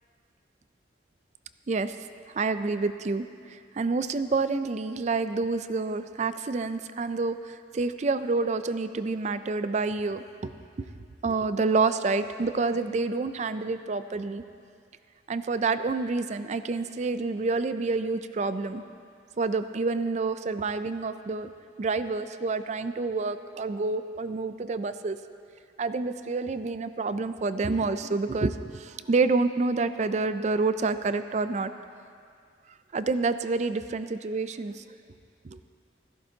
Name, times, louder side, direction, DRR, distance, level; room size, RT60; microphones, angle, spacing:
voice 1, 2.3-10.9 11.2-14.4 15.3-18.8 19.4-21.5 21.8-25.2 25.8-31.7 32.9-34.8 35.4-35.6, right 3 dB, 40° right, 11 dB, 0.4 m, -28 dB
16.0 x 14.0 x 2.8 m, 2.3 s
head